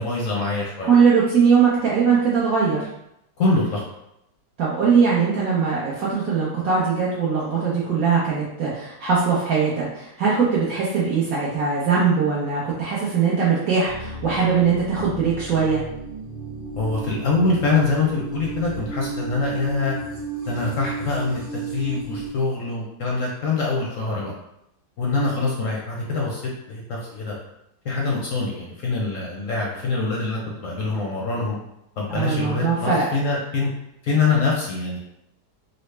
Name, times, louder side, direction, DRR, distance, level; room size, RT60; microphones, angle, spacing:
voice 1, 0.0-0.9 3.4-3.8 16.8-19.9 20.5-24.3 25.0-27.4 27.8-31.6 32.0-33.7 34.0-35.0, left 3 dB, 65° left, -3 dB, 0.8 m, -24 dB
voice 2, 0.9-2.8 4.6-15.8 32.1-33.0, right 5 dB, 65° right, -6 dB, 1.0 m, -20 dB
sound 1, 13.8-22.3, right 5 dB, 40° right, 1.2 m, -33 dB
3.9 x 2.0 x 3.2 m, 0.82 s
omnidirectional pair, 1.8 m